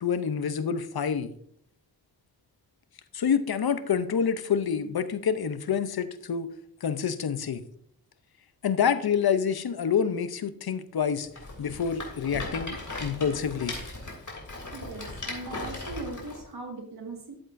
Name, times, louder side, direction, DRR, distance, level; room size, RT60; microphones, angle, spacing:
voice 1, 0.0-1.3 3.1-6.5 6.8-7.6 8.6-11.3 11.6-13.7, left 7 dB, 75° left, 12 dB, 0.7 m, -27 dB
Rattle, 11.3-16.4, left 2 dB, 50° left, 2.9 m, -38 dB
voice 2, 14.7-17.4, right 3 dB, 90° right, 2 dB, 1.8 m, -39 dB
12.5 x 7.9 x 2.6 m, 0.68 s
wide cardioid pair, 60°, 37 cm